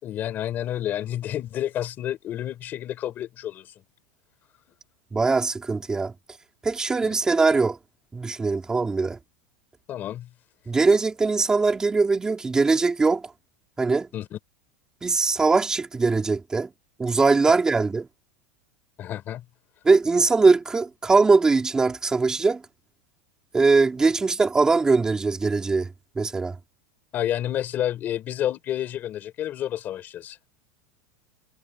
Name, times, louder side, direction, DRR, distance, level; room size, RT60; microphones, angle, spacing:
voice 1, 0.0-3.7 7.0-7.1 9.9-10.3 14.1-14.4 19.0-19.4 27.1-30.4, left 11 dB, 25° left, 4.5 m, -30 dB
voice 2, 5.1-6.1 6.6-7.8 8.1-9.2 10.7-13.3 13.8-14.1 15.0-16.7 17.0-18.1 19.8-22.6 23.5-25.9 26.1-26.6, right 4 dB, 10° right, 3.5 m, -21 dB
supercardioid pair, 175°, 8 cm